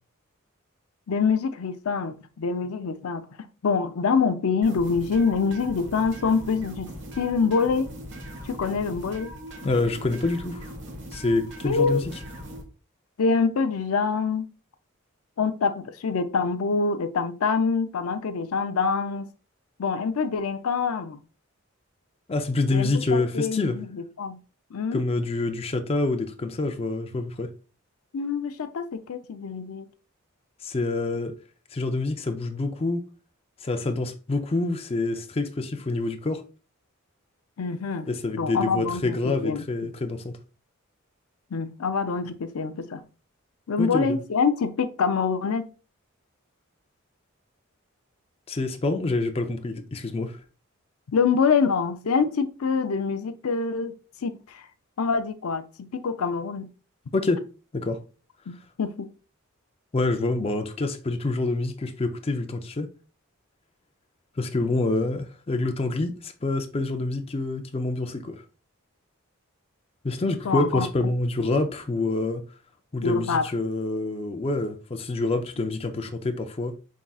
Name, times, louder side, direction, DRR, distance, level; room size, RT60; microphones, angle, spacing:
voice 1, 1.1-3.3 3.6-6.9 7.2-7.9 8.4-9.3 11.6-12.0 13.2-14.5 15.4-19.3 19.8-21.2 22.7-24.4 24.7-25.0 28.1-29.8 37.6-38.1 38.4-39.6 41.5-43.0 43.7-45.6 51.1-53.9 54.2-54.6 55.0-55.6 56.0-56.7 58.5-59.1 70.4-70.9 73.0-73.4, left 5 dB, 90° left, 0.5 m, -25 dB
sound 1, 4.6-12.6, equal, 60° right, 1.4 m, -40 dB
voice 2, 9.6-10.7 11.1-12.0 22.3-23.8 24.9-27.5 30.6-31.3 31.7-33.0 33.6-36.4 38.1-40.4 43.8-44.2 48.5-50.4 57.1-57.4 57.7-58.0 59.9-62.9 64.4-68.4 70.0-72.4 72.9-76.7, left 2 dB, 30° left, 0.5 m, -27 dB
5.4 x 3.6 x 2.3 m
head